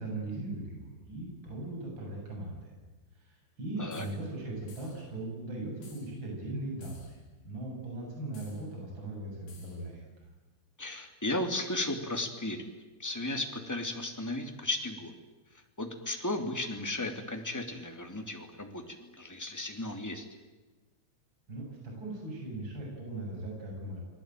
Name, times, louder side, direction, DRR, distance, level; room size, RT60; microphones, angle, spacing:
voice 1, 0.0-2.7 3.1-7.2 7.4-10.0 21.5-24.0, right 2 dB, 25° right, -1 dB, 8.5 m, -39 dB
sound 1, 3.9-4.2 4.7-5.1 5.8-6.1 6.8-7.2 8.3-8.6 9.5-9.8, left 5 dB, 70° left, 7.8 m, -56 dB
voice 2, 10.8-12.6 13.0-15.1 15.8-20.2, left 2 dB, 5° left, 4 dB, 1.6 m, -35 dB
30.0 x 20.5 x 9.2 m, 1.2 s
omnidirectional pair, 5.2 m